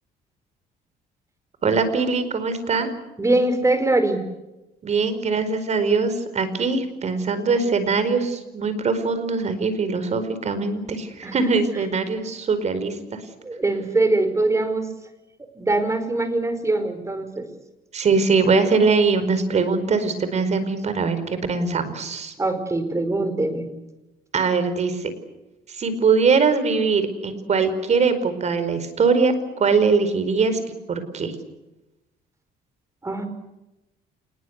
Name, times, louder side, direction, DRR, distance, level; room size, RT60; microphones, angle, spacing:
voice 1, 1.6-2.9 4.8-13.2 17.9-22.3 24.3-25.1 25.7-30.6 30.9-31.3, right 4 dB, 40° right, 11 dB, 4.9 m, -22 dB
voice 2, 3.2-4.2 11.2-11.5 13.4-14.9 15.5-17.5 22.4-23.7 33.0-33.3, right 2 dB, 15° right, 9 dB, 4.9 m, -22 dB
27.5 x 21.0 x 8.3 m, 0.98 s
cardioid pair, 110°, 17 cm